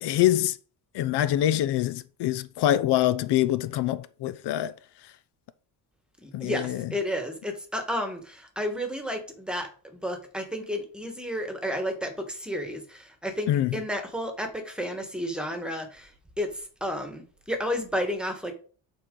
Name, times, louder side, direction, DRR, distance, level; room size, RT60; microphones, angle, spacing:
voice 1, 0.0-0.6 0.9-4.7 6.3-6.9 13.5-13.8, left 13 dB, 75° left, 0.6 m, -25 dB
voice 2, 6.2-16.1 16.4-18.5, equal, ahead, 1.3 m, -32 dB
11.5 x 4.2 x 3.8 m
cardioid pair, 160°, 41 cm